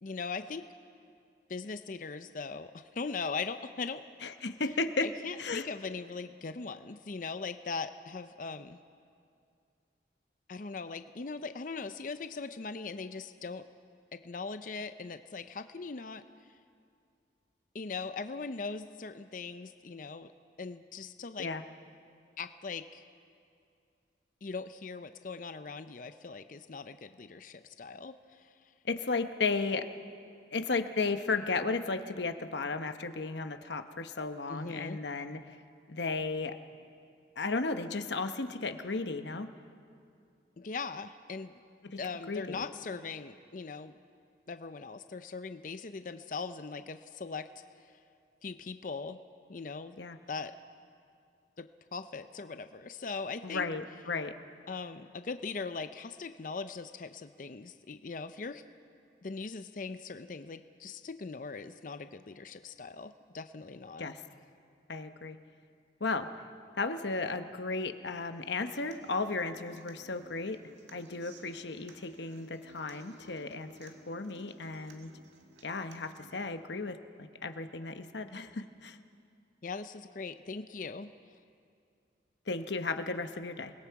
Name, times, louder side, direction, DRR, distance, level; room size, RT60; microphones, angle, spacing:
voice 1, 0.0-0.6 1.5-4.0 5.0-8.8 10.5-13.7 14.1-16.2 17.7-20.3 20.6-21.5 22.4-23.0 24.4-28.5 34.5-35.0 40.6-41.6 42.0-43.9 44.5-47.5 48.4-49.2 49.5-50.0 50.3-50.5 51.6-53.7 54.7-58.6 59.2-64.1 79.6-81.1, left 4 dB, 45° left, 10 dB, 0.5 m, -40 dB
voice 2, 4.2-5.1 5.4-5.7 21.4-21.6 28.8-29.9 30.5-35.6 35.9-36.6 37.4-39.5 41.9-42.0 42.3-42.6 50.0-50.2 53.4-54.3 64.0-64.2 64.9-65.4 66.0-66.3 66.8-70.6 70.9-75.1 75.6-79.0 82.5-83.7, left 3 dB, 70° left, 8 dB, 1.0 m, -34 dB
Human voice / Acoustic guitar, 68.4-76.4, right 1 dB, 80° right, 1.8 m, -57 dB
28.0 x 21.0 x 4.7 m, 2.4 s
head